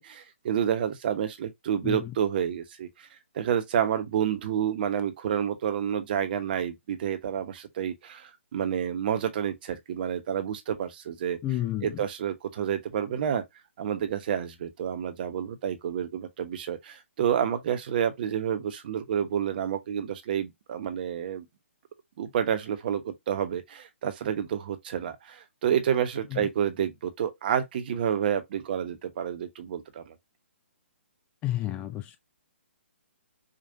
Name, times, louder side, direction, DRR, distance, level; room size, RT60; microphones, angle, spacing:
voice 1, 0.0-3.1 3.3-11.4 11.8-13.4 13.8-21.4 22.2-30.1, right 9 dB, 45° right, 1.0 m, -29 dB
voice 2, 1.8-2.1 11.4-12.0 26.3-26.5 31.4-32.2, left 14 dB, 15° left, 0.4 m, -31 dB
5.2 x 2.5 x 2.6 m
hypercardioid pair, 145°, 7 cm